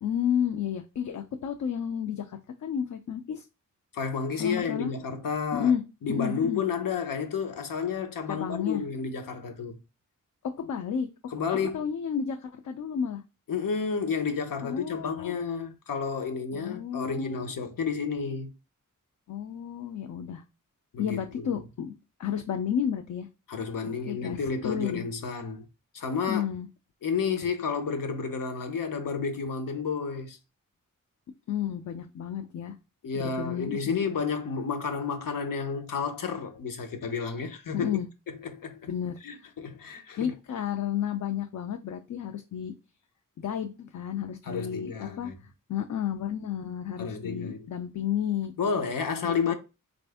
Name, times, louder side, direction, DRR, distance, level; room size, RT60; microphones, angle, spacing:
voice 1, 0.0-3.5 4.4-4.9 5.5-5.8 6.1-6.6 8.3-8.8 10.4-11.1 11.7-13.2 14.6-15.3 16.5-17.4 19.3-20.4 21.0-23.3 24.1-25.0 26.3-26.7 31.5-32.7 33.1-34.1 37.7-38.1 38.9-39.5 40.2-42.7 43.4-45.3 45.7-48.5 49.2-49.5, left 8 dB, 65° left, 0.4 m, -31 dB
voice 2, 3.9-5.7 6.0-9.8 11.3-11.9 13.5-18.5 20.9-21.6 23.5-25.6 25.9-26.5 27.0-30.4 33.0-38.0 38.4-38.9 39.2-40.3 44.4-45.4 47.0-47.7 48.6-49.5, left 5 dB, 85° left, 0.9 m, -31 dB
4.1 x 2.6 x 3.4 m
wide cardioid pair, 150°, 32 cm